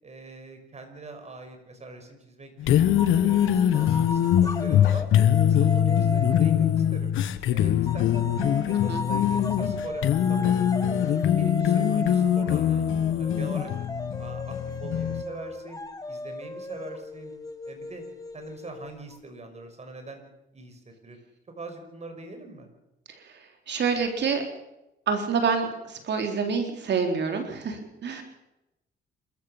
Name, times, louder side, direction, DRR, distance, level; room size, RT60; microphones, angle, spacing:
voice 1, 0.0-2.9 3.2-5.1 5.4-7.2 7.5-10.6 11.2-13.7 14.2-15.8 16.1-17.3 17.7-18.0 18.3-20.2 20.5-21.2 21.6-22.7, right 3 dB, 35° right, 6 dB, 5.6 m, -43 dB
sound 1, 2.6-15.2, left 10 dB, 80° left, 1.4 m, -23 dB
sound 2, 3.0-6.9 7.9-19.2, left 1 dB, 20° left, 2.0 m, -36 dB
voice 2, 23.1-24.4 25.1-28.2, right 5 dB, 60° right, 5 dB, 3.6 m, -27 dB
27.5 x 14.5 x 7.3 m, 0.92 s
cardioid pair, 90°, 20 cm